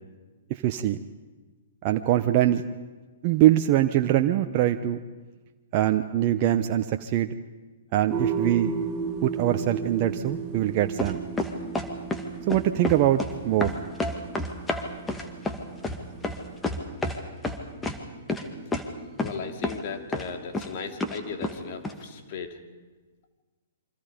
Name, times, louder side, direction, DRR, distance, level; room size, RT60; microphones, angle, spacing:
voice 1, 0.5-1.0 1.8-2.6 3.2-5.0 5.7-7.3 7.9-8.7 9.2-11.2 12.5-13.7, right 13 dB, 40° right, 6 dB, 1.0 m, -23 dB
sound 1, 8.1-16.6, right 5 dB, 20° right, 3.8 m, -35 dB
sound 2, 11.0-12.2 12.5-13.3 13.6-17.2 17.4-18.0 18.3-18.4 18.7-18.8 19.2-19.4 19.6-19.8 20.1-20.7 21.0-21.6 21.8-21.9, left 2 dB, 10° left, 2.4 m, -29 dB
voice 2, 19.2-22.6, left 6 dB, 50° left, 5 dB, 3.1 m, -37 dB
27.5 x 25.0 x 5.2 m, 1.3 s
hypercardioid pair, 120°, 0 cm